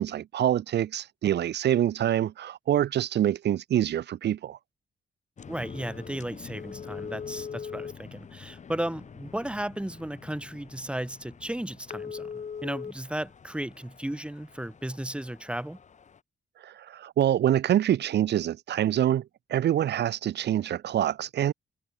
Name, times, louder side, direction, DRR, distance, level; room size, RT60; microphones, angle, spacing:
voice 1, 0.0-4.6 16.6-21.5, right 11 dB, 80° right, 0.8 m, -26 dB
sound 1, 5.4-16.2, left 6 dB, 45° left, 1.9 m, -43 dB
voice 2, 5.5-15.8, right 1 dB, 5° right, 2.9 m, -35 dB
wide cardioid pair, 145°, 17 cm